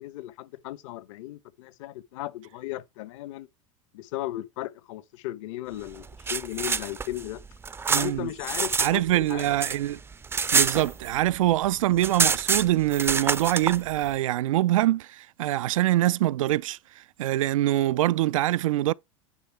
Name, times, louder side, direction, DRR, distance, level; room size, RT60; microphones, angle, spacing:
voice 1, 0.0-3.5 3.9-7.4 7.9-9.5, left 15 dB, 70° left, 1.0 m, -36 dB
sound 1, 6.0-8.9 9.2-11.4 11.6-11.7 12.0-13.8, right 5 dB, 15° right, 0.5 m, -26 dB
voice 2, 7.9-8.3 8.8-10.0 10.5-16.8 17.2-18.9, right 14 dB, 80° right, 0.4 m, -24 dB
9.5 x 3.6 x 5.7 m
hypercardioid pair, 100°, 17 cm